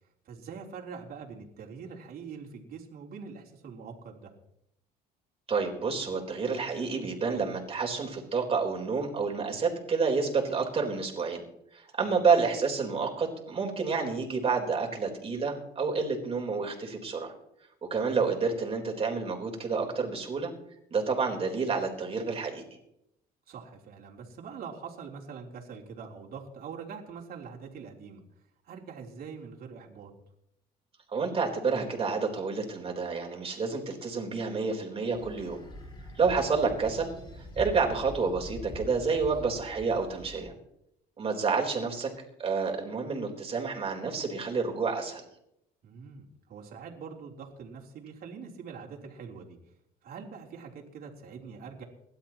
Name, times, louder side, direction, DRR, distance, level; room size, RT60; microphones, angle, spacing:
voice 1, 0.3-4.3 23.5-28.2 28.6-30.1 36.2-36.3 45.8-49.6 50.0-51.9, right 6 dB, 65° right, -1 dB, 3.5 m, -44 dB
voice 2, 5.5-11.4 11.7-17.3 17.9-20.5 20.9-22.6 31.1-35.6 36.2-37.1 37.4-40.5 41.2-42.1 42.4-45.2, right 4 dB, 35° right, 1 dB, 4.0 m, -29 dB
sound 1, 35.1-40.5, left 1 dB, 30° left, 5.9 m, -44 dB
27.5 x 12.5 x 3.0 m, 0.78 s
cardioid pair, 110°, 17 cm